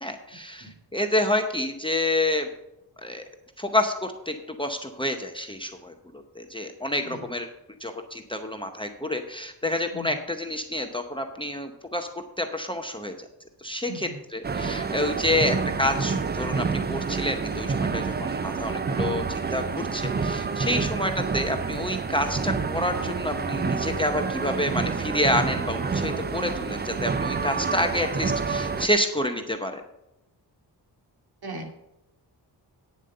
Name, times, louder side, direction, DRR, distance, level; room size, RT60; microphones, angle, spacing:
voice 1, 0.0-2.5 3.0-3.2 3.6-7.5 7.8-13.3 13.6-29.8, left 1 dB, 10° left, 4 dB, 0.7 m, -28 dB
voice 2, 0.6-0.7 7.0-7.2 9.9-10.1 13.9-14.2 18.0-18.1 23.6-23.7 31.4-31.7, right 1 dB, 60° right, 1 dB, 2.7 m, -38 dB
sound 1, 14.4-28.9, right 5 dB, 25° right, 0.4 m, -28 dB
9.4 x 7.3 x 6.5 m, 0.87 s
wide cardioid pair, 145°, 42 cm